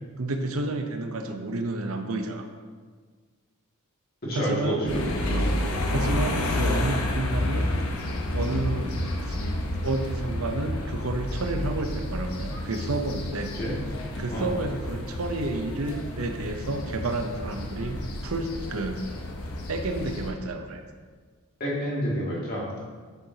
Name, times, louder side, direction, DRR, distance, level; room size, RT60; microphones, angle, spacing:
voice 1, 0.2-2.5 4.3-5.0 5.3-5.6 5.9-7.6 8.3-9.4 9.8-13.5 14.2-19.0 19.7-20.8, right 2 dB, 70° right, 5 dB, 0.7 m, -30 dB
voice 2, 4.2-5.5 13.5-13.8 14.3-14.5 21.6-22.7, equal, 45° left, -6 dB, 2.1 m, -29 dB
sound 1, 4.9-20.3, left 1 dB, 75° left, 0.9 m, -30 dB
8.5 x 6.8 x 2.8 m, 1.5 s
head